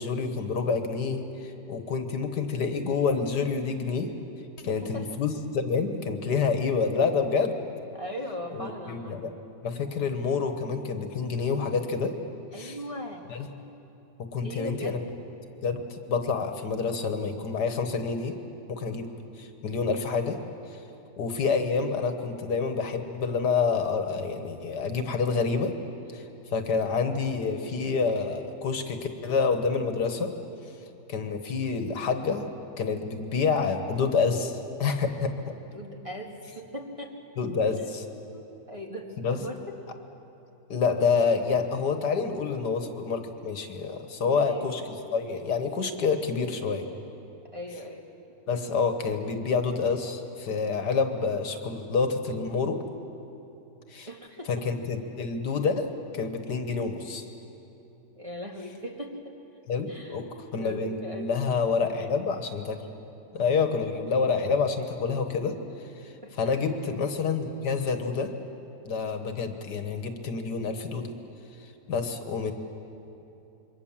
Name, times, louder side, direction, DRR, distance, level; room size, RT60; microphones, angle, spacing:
voice 1, 0.0-4.1 4.6-7.6 8.5-9.3 9.6-12.1 12.5-12.8 13.3-13.5 14.3-15.0 15.6-18.4 18.7-19.1 19.4-20.4 21.2-25.7 26.1-26.2 26.5-30.3 31.1-32.5 32.8-35.3 37.4-38.0 39.2-39.4 40.7-44.8 45.1-46.9 48.5-52.8 53.9-54.1 54.5-57.3 59.7-60.2 60.5-62.8 63.3-65.6 66.0-68.3 68.9-71.1 71.9-72.5, left 5 dB, 70° left, 7 dB, 1.9 m, -28 dB
voice 2, 4.6-5.1 7.9-9.2 12.5-13.2 14.4-15.0 35.5-37.2 37.7-37.8 38.3-39.7 44.2-44.7 47.5-48.1 54.1-54.6 58.2-59.4 59.9-61.3 66.2-66.5, equal, 20° right, 1 dB, 2.0 m, -39 dB
27.0 x 23.0 x 7.4 m, 2.9 s
omnidirectional pair, 1.8 m